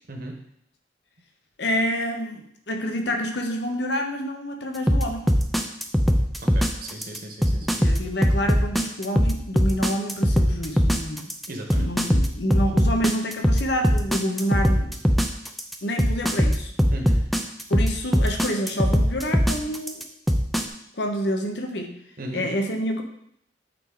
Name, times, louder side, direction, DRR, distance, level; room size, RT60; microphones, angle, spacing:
voice 1, 1.6-5.2 7.6-11.3 11.7-14.9 15.8-16.7 17.7-20.0 21.0-21.9 22.3-23.0, equal, 65° left, 4 dB, 1.0 m, -28 dB
sound 1, 4.9-20.6, equal, ahead, 0.4 m, -20 dB
voice 2, 6.4-7.8 11.5-11.9 16.9-17.2 22.2-22.5, right 1 dB, 50° right, 2 dB, 1.2 m, -36 dB
8.9 x 4.4 x 3.9 m, 0.71 s
head